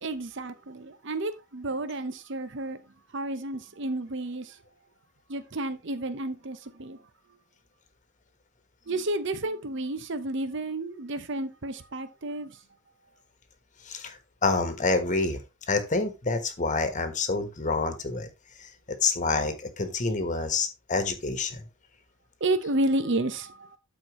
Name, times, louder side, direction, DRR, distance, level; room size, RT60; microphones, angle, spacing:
voice 1, 0.0-2.8 3.1-4.6 5.3-7.0 8.9-12.6 22.4-23.8, right 2 dB, 60° right, 0.9 m, -31 dB
voice 2, 13.8-15.4 15.7-18.3 18.6-18.7 19.0-21.6, left 3 dB, 35° left, 1.3 m, -27 dB
12.5 x 4.5 x 3.1 m
head